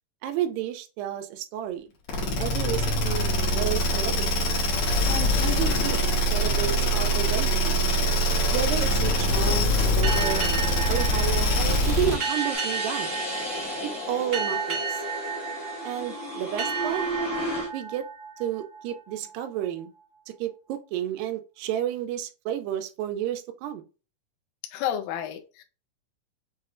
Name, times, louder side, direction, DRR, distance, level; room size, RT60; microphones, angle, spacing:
voice 1, 0.2-1.9 2.4-3.3 3.6-4.5 5.1-6.0 6.3-7.8 8.5-10.5 10.9-13.1 14.1-15.0 15.8-17.0 17.7-18.1 18.4-19.9 20.4-23.8, right 10 dB, 80° right, 2.1 m, -31 dB
sound 1, 2.1-12.3, equal, 65° left, 1.9 m, -23 dB
sound 2, 7.6-17.7, left 1 dB, 45° left, 0.8 m, -35 dB
sound 3, 10.0-19.3, right 6 dB, 45° right, 1.0 m, -33 dB
voice 2, 24.7-25.6, left 10 dB, 80° left, 2.0 m, -30 dB
6.5 x 2.3 x 2.5 m
omnidirectional pair, 4.1 m